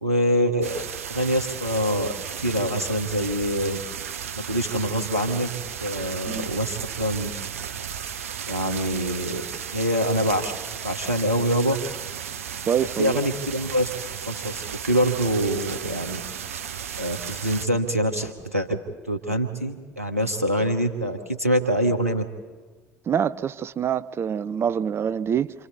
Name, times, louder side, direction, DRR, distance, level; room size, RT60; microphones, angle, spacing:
voice 1, 0.0-3.8 4.3-5.5 5.8-7.3 8.5-9.4 9.7-10.5 10.8-11.8 13.0-13.9 14.2-16.2 17.0-18.8 19.1-22.3, equal, 90° right, 7 dB, 1.1 m, -25 dB
sound 1, 0.6-17.7, right 8 dB, 75° right, 0.7 m, -34 dB
voice 2, 12.7-13.2 23.1-25.5, right 8 dB, 35° right, 18 dB, 0.5 m, -25 dB
28.0 x 26.0 x 4.1 m, 1.4 s
figure-of-eight pair, 60°, 8 cm